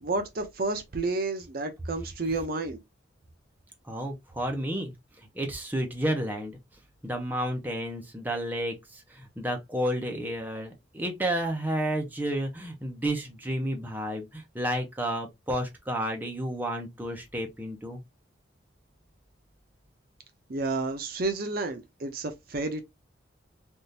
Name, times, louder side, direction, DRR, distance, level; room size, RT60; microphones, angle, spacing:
voice 1, 0.0-2.8 20.5-22.8, right 3 dB, 50° right, 0.6 m, -31 dB
voice 2, 3.8-4.9 5.3-6.6 7.0-18.0, right 1 dB, 10° right, 0.7 m, -31 dB
3.6 x 2.5 x 2.7 m
head